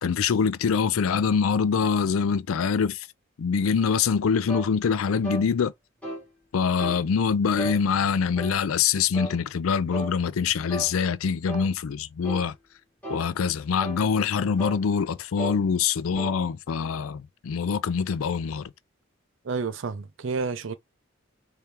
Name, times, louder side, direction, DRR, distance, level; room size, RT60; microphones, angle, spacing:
voice 1, 0.0-3.1 3.4-5.7 6.5-12.5 13.1-18.7, left 6 dB, 90° left, 0.4 m, -24 dB
sound 1, 4.5-4.7 5.2-5.5 6.0-6.3 6.8-7.0 7.6-7.8 8.4-8.6 9.1-9.4 9.9-10.1 10.7-10.9 11.5-11.7 12.2-12.5 13.0-13.3 13.8-14.0 14.6-14.8 15.4-15.6 16.1-16.4, right 2 dB, 5° left, 1.4 m, -35 dB
voice 2, 19.4-20.8, right 4 dB, 65° right, 0.5 m, -30 dB
3.3 x 3.3 x 2.9 m
head